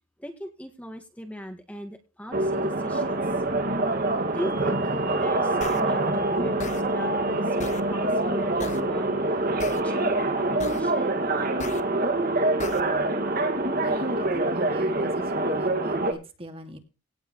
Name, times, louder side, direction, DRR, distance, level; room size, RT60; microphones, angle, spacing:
voice 1, 0.2-3.4 4.3-7.6 7.9-9.4 9.7-11.2, equal, 5° left, 4 dB, 2.0 m, -39 dB
sound 1, 2.3-16.1, right 2 dB, 45° right, 2.1 m, -25 dB
sound 2, 5.6-5.8 6.6-6.8 7.6-7.8 8.6-8.8 9.6-9.8 10.6-10.8 11.6-11.8 12.6-12.8, left 4 dB, 35° left, 1.0 m, -36 dB
voice 2, 13.8-16.8, right 1 dB, 25° right, 5 dB, 2.4 m, -40 dB
18.0 x 7.9 x 3.1 m, 0.31 s
head